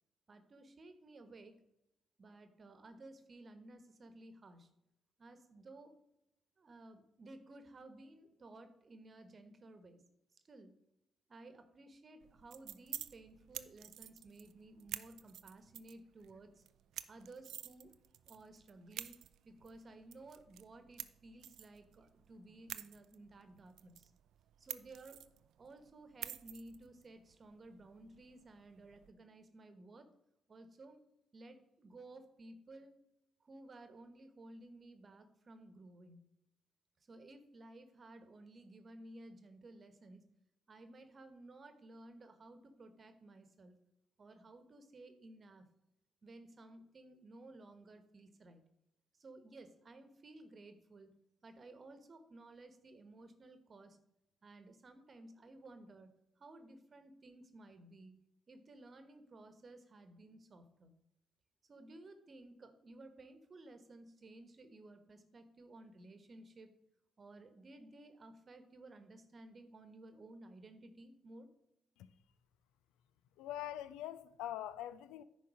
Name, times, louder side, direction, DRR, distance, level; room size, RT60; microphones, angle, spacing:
voice 1, 0.3-1.6 2.2-4.7 5.2-5.9 6.6-10.0 10.4-10.8 11.3-16.6 17.1-17.9 18.3-19.2 19.4-24.1 24.6-25.2 25.6-30.1 30.5-31.0 31.3-32.9 33.4-36.2 37.1-40.2 40.7-43.7 44.2-45.7 46.2-48.6 49.2-51.1 51.4-54.0 54.4-60.9 61.7-66.7 67.2-71.5, right 2 dB, 45° right, 1.2 m, -56 dB
sound 1, 12.2-29.1, right 11 dB, 75° right, 0.4 m, -51 dB
voice 2, 73.4-75.2, left 12 dB, 80° left, 0.4 m, -43 dB
10.0 x 4.0 x 6.2 m
hypercardioid pair, 45°, 0 cm